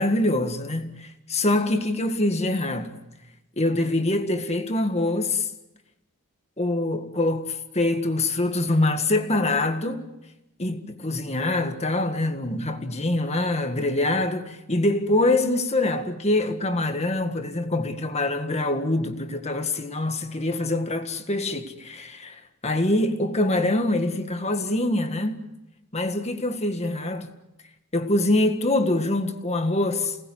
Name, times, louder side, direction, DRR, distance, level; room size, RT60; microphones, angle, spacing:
voice 1, 0.0-3.0 3.6-5.5 6.6-10.1 10.6-25.5 25.9-27.3 27.9-30.2, left 2 dB, 30° left, 1.8 m, -24 dB
29.0 x 19.0 x 8.0 m
head